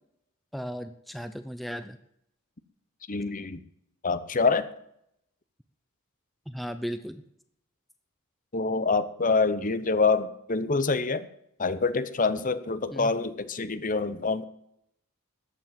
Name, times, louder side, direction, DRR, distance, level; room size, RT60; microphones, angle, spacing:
voice 1, 0.5-2.0 6.5-7.2 12.9-13.1, equal, ahead, 9 dB, 0.7 m, -36 dB
voice 2, 3.1-3.6 4.0-4.7 8.5-11.3 11.6-14.4, left 4 dB, 40° left, 14 dB, 0.9 m, -26 dB
14.0 x 8.9 x 7.5 m, 0.76 s
head